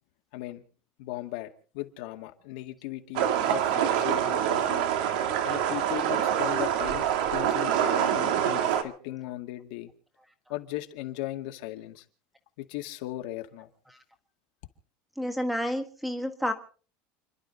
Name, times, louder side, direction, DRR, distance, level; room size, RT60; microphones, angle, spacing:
voice 1, 0.3-0.6 1.0-4.9 5.4-9.9 10.5-12.1 12.6-13.7, left 16 dB, 75° left, 2.0 m, -37 dB
sound 1, 3.2-8.8, right 9 dB, 90° right, 2.1 m, -26 dB
voice 2, 15.2-16.5, equal, ahead, 1.6 m, -30 dB
29.5 x 11.5 x 4.1 m
cardioid pair, 170°, 4 cm